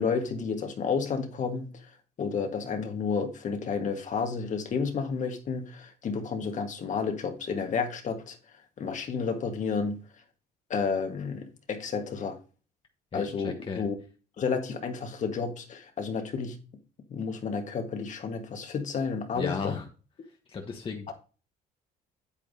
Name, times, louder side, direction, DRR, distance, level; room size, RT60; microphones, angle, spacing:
voice 1, 0.0-8.4 8.8-10.0 10.7-12.4 13.1-14.0 14.4-16.6 17.1-19.8 21.1-21.2, left 5 dB, 45° left, 6 dB, 1.5 m, -31 dB
voice 2, 13.1-13.8 19.3-19.8 20.5-21.1, left 5 dB, 30° left, 2 dB, 1.1 m, -35 dB
8.6 x 8.3 x 2.7 m, 0.36 s
cardioid pair, 110°, 17 cm